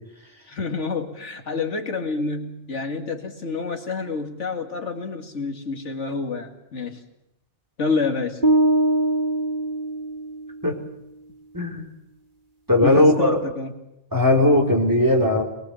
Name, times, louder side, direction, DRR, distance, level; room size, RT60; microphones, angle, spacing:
voice 1, 0.5-7.0 7.8-8.4 12.8-13.7, left 4 dB, 80° left, 5 dB, 2.5 m, -28 dB
sound 1, 8.4-10.6, right 1 dB, 45° right, 1.8 m, -22 dB
voice 2, 11.5-11.8 12.7-13.4 14.1-15.4, left 1 dB, 15° right, 1 dB, 4.3 m, -18 dB
23.5 x 22.0 x 7.2 m, 0.87 s
omnidirectional pair, 1.2 m